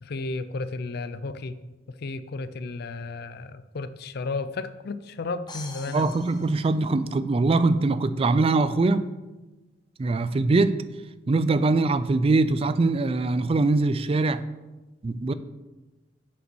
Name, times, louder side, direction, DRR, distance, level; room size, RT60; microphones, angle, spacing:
voice 1, 0.0-1.6 1.9-6.1, left 3 dB, 55° left, 13 dB, 0.5 m, -33 dB
sound 1, 5.5-7.4, left 3 dB, 25° left, 0.9 m, -44 dB
voice 2, 5.9-9.1 10.0-10.8 11.3-14.4 15.0-15.3, right 3 dB, 30° right, 13 dB, 0.3 m, -22 dB
8.1 x 5.2 x 6.1 m, 1.1 s
head